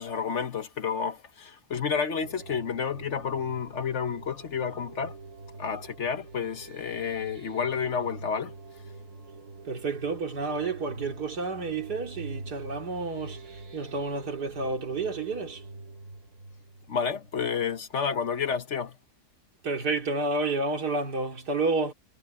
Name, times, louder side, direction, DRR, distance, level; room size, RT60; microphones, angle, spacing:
voice 1, 0.0-5.2 5.6-8.5 16.9-19.0, left 6 dB, 50° left, 1.3 m, -30 dB
sound 1, 2.2-17.7, right 3 dB, 70° right, 2.7 m, -45 dB
voice 2, 9.6-15.6 19.6-21.9, right 3 dB, 85° right, 3.3 m, -30 dB
omnidirectional pair, 1.7 m